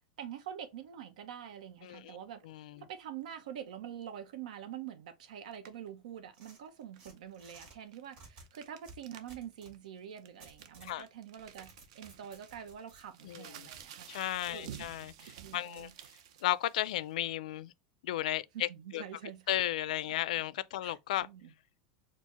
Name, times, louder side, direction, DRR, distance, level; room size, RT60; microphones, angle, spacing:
voice 1, 0.2-2.5 2.8-14.1 14.5-14.9 15.4-16.0 18.5-19.6 20.8-21.5, right 9 dB, 85° right, 0.7 m, -46 dB
voice 2, 1.8-2.2 2.5-2.8 10.8-11.0 13.2-13.7 14.1-15.9 16.4-17.7 18.0-18.7 18.9-19.0 19.5-21.3, left 13 dB, 70° left, 0.3 m, -34 dB
sound 1, 5.5-5.9 6.8-9.4 9.7-9.8 10.2-17.1, right 9 dB, 55° right, 0.5 m, -52 dB
sound 2, 6.3-7.8 8.1-9.8 10.4-11.0 11.4-13.0 13.7-13.8 14.4-14.8 15.8-15.9, right 3 dB, 30° right, 2.0 m, -56 dB
4.5 x 2.1 x 4.1 m
supercardioid pair, 175°, 4 cm